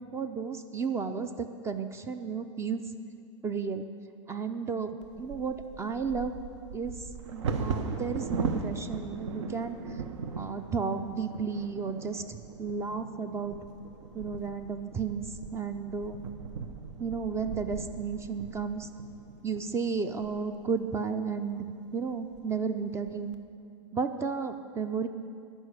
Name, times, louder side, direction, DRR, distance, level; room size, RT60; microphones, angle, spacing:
voice 1, 0.1-2.8 3.4-3.8 4.3-6.4 6.7-7.0 7.3-10.0 10.4-13.6 14.1-16.3 17.0-18.9 19.4-21.7 21.9-23.4 23.9-25.1, right 5 dB, 15° right, 9 dB, 0.5 m, -33 dB
Bird vocalization bird call bird song / Wind / Thunder, 5.0-20.9 21.5-21.6 22.0-22.4 22.8-23.3, right 5 dB, 65° right, 0.8 m, -38 dB
11.0 x 5.4 x 8.2 m, 2.4 s
hypercardioid pair, 105°, 16 cm